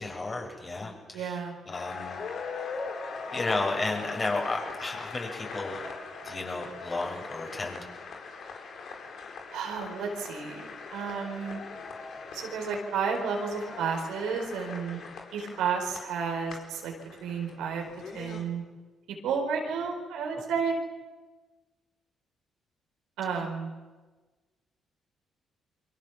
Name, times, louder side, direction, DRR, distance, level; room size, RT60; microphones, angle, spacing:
voice 1, 0.0-2.2 3.3-5.8 6.2-7.9, left 3 dB, 30° left, 2 dB, 7.1 m, -33 dB
voice 2, 1.1-1.5 9.5-10.6 10.9-11.6 12.3-15.0 15.3-16.9 17.2-17.9 18.1-18.6 19.2-20.8 23.2-23.7, right 6 dB, 90° right, 0 dB, 4.6 m, -31 dB
sound 1, 1.7-18.4, left 4 dB, 65° left, 4.6 m, -41 dB
29.0 x 23.5 x 7.3 m, 1.3 s
cardioid pair, 90°, 0 cm